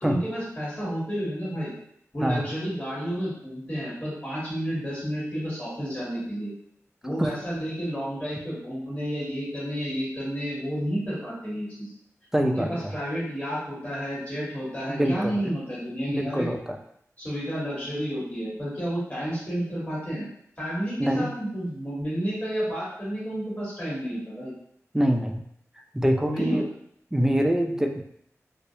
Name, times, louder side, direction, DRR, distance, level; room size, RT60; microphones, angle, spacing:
voice 1, 0.0-1.7 2.1-6.5 7.0-11.9 12.4-16.5 17.2-20.2 20.6-24.5 26.3-26.6, equal, 30° left, -8 dB, 1.4 m, -31 dB
voice 2, 12.3-12.9 14.9-15.5 16.1-16.6 21.0-21.3 24.9-25.4 25.9-26.7 27.1-28.0, equal, 10° right, 3 dB, 0.3 m, -24 dB
2.4 x 2.0 x 2.7 m, 0.70 s
wide cardioid pair, 70°, 6 cm